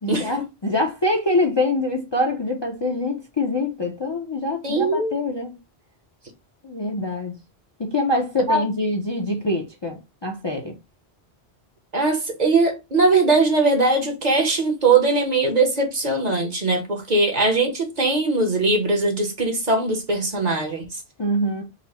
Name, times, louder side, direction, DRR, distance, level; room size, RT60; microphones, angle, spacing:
voice 1, 0.0-5.6 6.6-7.3 7.8-10.7 21.2-21.6, left 1 dB, 35° left, 0.5 m, -24 dB
voice 2, 4.6-5.1 8.5-8.6 11.9-20.8, right 3 dB, 45° right, 0.9 m, -20 dB
4.0 x 2.0 x 4.1 m
omnidirectional pair, 1.1 m